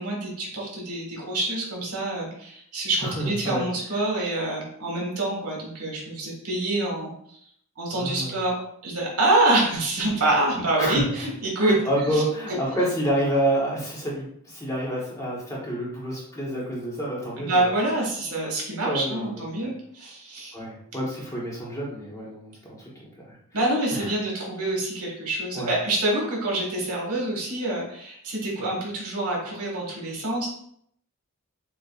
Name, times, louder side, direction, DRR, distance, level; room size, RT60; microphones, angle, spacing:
voice 1, 0.0-7.1 7.8-8.5 8.8-11.7 12.1-12.2 17.4-20.5 23.5-30.5, right 2 dB, 85° right, -2 dB, 1.6 m, -26 dB
voice 2, 3.0-3.6 7.9-8.4 10.8-11.3 11.6-17.7 18.8-19.6 20.5-23.4 23.9-24.1 25.5-25.7 28.6-28.7, right 1 dB, 15° left, -5 dB, 1.1 m, -28 dB
6.6 x 2.4 x 2.4 m, 0.68 s
head